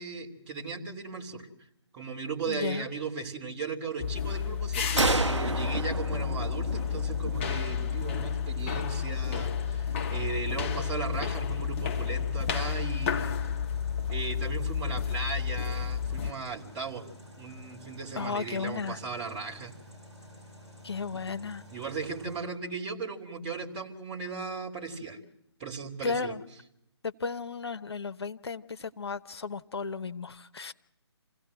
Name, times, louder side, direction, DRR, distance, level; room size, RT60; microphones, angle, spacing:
voice 1, 0.0-1.5 1.9-13.4 14.1-17.0 17.3-19.7 21.7-25.2 25.6-26.3, right 4 dB, 25° right, -2 dB, 3.0 m, -37 dB
voice 2, 2.5-2.9 18.1-19.0 20.8-21.6 26.0-26.4 27.0-30.7, left 5 dB, 65° left, 11 dB, 0.9 m, -34 dB
sound 1, 4.0-16.3, left 7 dB, 25° left, 1.0 m, -31 dB
sound 2, 4.7-22.4, equal, ahead, 4.2 m, -50 dB
sound 3, 5.0-8.5, right 2 dB, 85° right, 0.8 m, -31 dB
27.5 x 16.5 x 7.7 m, 0.83 s
figure-of-eight pair, 145°, 15 cm